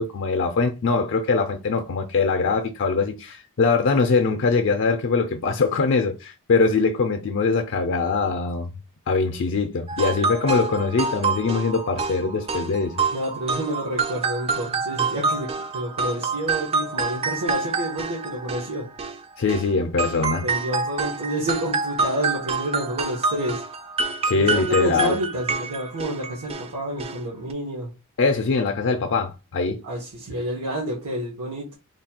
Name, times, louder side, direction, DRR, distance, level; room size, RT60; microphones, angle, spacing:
voice 1, 0.0-8.7 9.1-13.0 19.4-20.5 24.2-25.2 28.2-29.8, left 4 dB, 55° left, 0.4 m, -22 dB
sound 1, 9.9-19.7 20.0-26.7 27.0-27.2 27.5-27.6, right 4 dB, 25° right, 0.4 m, -27 dB
voice 2, 13.1-18.9 20.4-23.6 24.3-27.9 29.8-31.8, right 1 dB, 80° right, 1.1 m, -29 dB
3.2 x 2.3 x 4.2 m
head